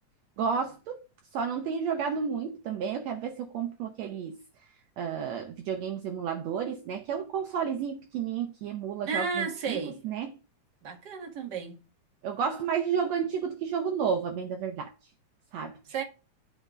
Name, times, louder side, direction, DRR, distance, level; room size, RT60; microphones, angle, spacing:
voice 1, 0.4-1.0 1.3-4.4 5.0-9.8 10.0-10.3 12.2-14.9 15.5-15.8, right 7 dB, 70° right, 1.9 m, -31 dB
voice 2, 9.1-10.0 10.8-11.8 15.9-16.0, right 5 dB, 40° right, 2.0 m, -33 dB
13.0 x 4.4 x 2.4 m
omnidirectional pair, 3.4 m